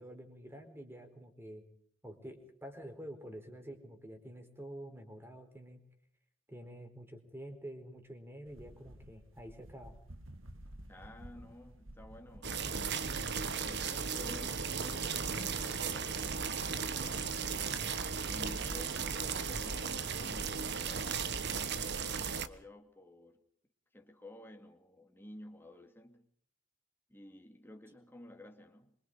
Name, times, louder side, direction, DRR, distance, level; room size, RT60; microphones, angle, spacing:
voice 1, 0.0-1.6 2.0-5.8 6.5-9.9, right 1 dB, 10° right, 4.3 m, -48 dB
sound 1, 8.4-20.0, right 1 dB, 80° right, 2.1 m, -51 dB
voice 2, 10.9-13.1 13.6-17.5 18.2-23.4 23.9-26.3 27.1-29.0, left 1 dB, 10° left, 2.7 m, -53 dB
sound 2, 12.4-22.5, right 6 dB, 60° right, 1.4 m, -36 dB
26.0 x 24.5 x 5.0 m
head